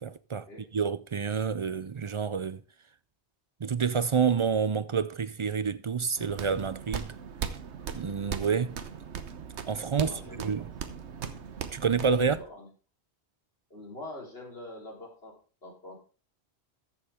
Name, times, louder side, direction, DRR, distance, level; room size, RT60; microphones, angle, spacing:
voice 1, 0.0-0.4 0.7-2.6 3.6-7.2 7.9-8.8 9.7-10.1 10.4-10.6 11.7-12.4, right 6 dB, 50° right, 0.3 m, -28 dB
sound 1, 6.2-12.4, right 7 dB, 90° right, 1.2 m, -39 dB
voice 2, 9.9-10.9 12.2-12.7 13.7-16.0, left 1 dB, 65° left, 3.7 m, -45 dB
14.0 x 7.2 x 3.5 m
omnidirectional pair, 1.1 m